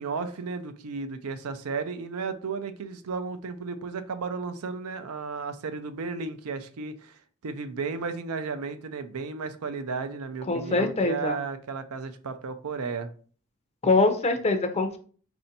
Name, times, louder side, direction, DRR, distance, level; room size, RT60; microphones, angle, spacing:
voice 1, 0.0-13.1, right 4 dB, 70° right, 0.5 m, -34 dB
voice 2, 10.5-11.4 13.8-15.0, left 3 dB, 30° left, 0.6 m, -23 dB
4.3 x 2.6 x 4.0 m
head